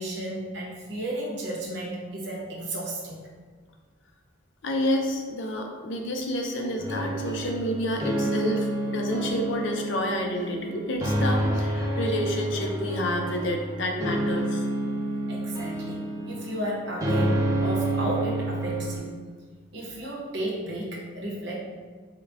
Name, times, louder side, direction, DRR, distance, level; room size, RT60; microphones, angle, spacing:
voice 1, 0.0-3.2 15.3-19.2 19.7-21.6, right 1 dB, 55° right, -3 dB, 0.8 m, -33 dB
voice 2, 4.6-14.7, left 1 dB, 65° left, 2 dB, 0.5 m, -29 dB
sound 1, 6.8-19.0, right 1 dB, 15° right, 0.4 m, -29 dB
3.7 x 2.2 x 3.4 m, 1.5 s
head